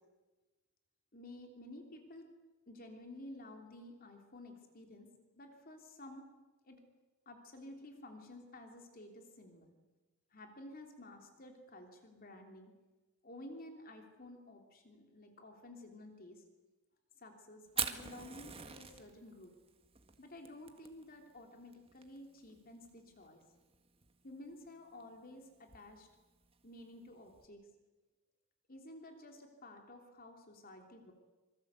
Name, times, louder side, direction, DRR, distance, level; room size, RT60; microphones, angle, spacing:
voice 1, 1.1-2.3 2.7-5.1 5.4-6.3 6.6-6.8 7.2-9.8 10.3-12.7 13.2-16.4 17.2-19.5 20.2-23.4 24.2-26.1 26.6-27.6 28.7-31.1, left 1 dB, 40° left, 4 dB, 3.2 m, -52 dB
Fire, 17.7-27.5, right 7 dB, 25° right, 1.7 m, -46 dB
26.5 x 23.5 x 8.2 m, 1.2 s
head